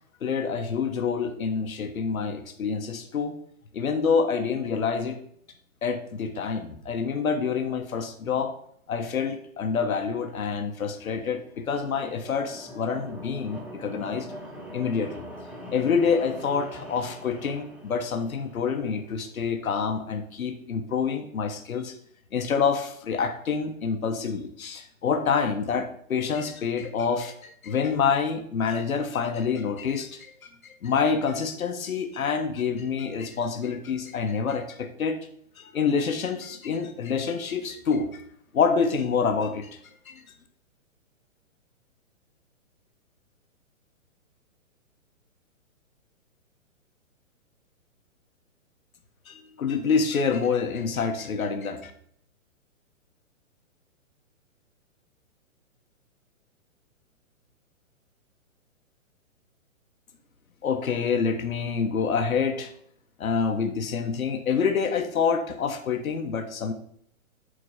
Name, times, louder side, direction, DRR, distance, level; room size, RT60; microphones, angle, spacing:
voice 1, 0.2-3.3 3.7-5.2 5.8-8.5 8.9-14.3 14.7-15.3 15.7-21.9 22.3-30.3 30.6-35.2 35.6-38.2 38.5-39.8 40.1-40.2 49.3-51.9 60.6-62.7 63.2-66.7, left 5 dB, 85° left, 6 dB, 1.2 m, -27 dB
sound 1, 11.2-19.0, equal, 5° right, 0.7 m, -43 dB
8.3 x 3.9 x 5.6 m, 0.65 s
hypercardioid pair, 145°, 41 cm